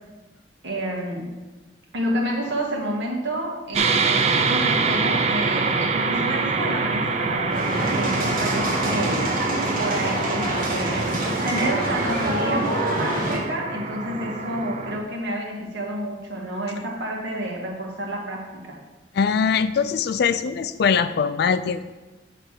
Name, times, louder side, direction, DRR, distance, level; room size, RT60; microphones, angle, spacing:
voice 1, 0.6-1.3 1.9-9.2 9.8-18.8, right 1 dB, 85° right, -2 dB, 1.8 m, -29 dB
sound 1, 3.7-15.0, right 4 dB, 40° right, 0.5 m, -25 dB
sound 2, 6.8-14.6, right 1 dB, 5° left, 1.0 m, -40 dB
voice 2, 7.1-7.5 7.8-7.9 19.1-21.9, left 6 dB, 65° left, 13 dB, 0.4 m, -23 dB
sound 3, 7.5-13.4, right 1 dB, 55° right, 1.7 m, -26 dB
8.1 x 3.3 x 6.5 m, 1.2 s
head